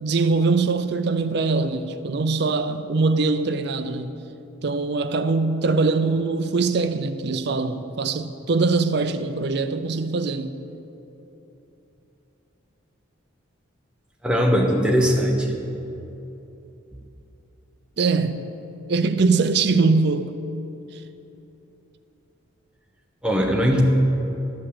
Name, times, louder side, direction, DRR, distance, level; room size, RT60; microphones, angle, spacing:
voice 1, 0.0-4.2 4.6-10.6 18.0-18.4 18.9-20.4 20.9-21.0, right 4 dB, 55° right, 0.5 m, -22 dB
voice 2, 14.2-15.7 23.2-23.8, equal, 5° right, 1.0 m, -20 dB
12.5 x 5.4 x 8.6 m
head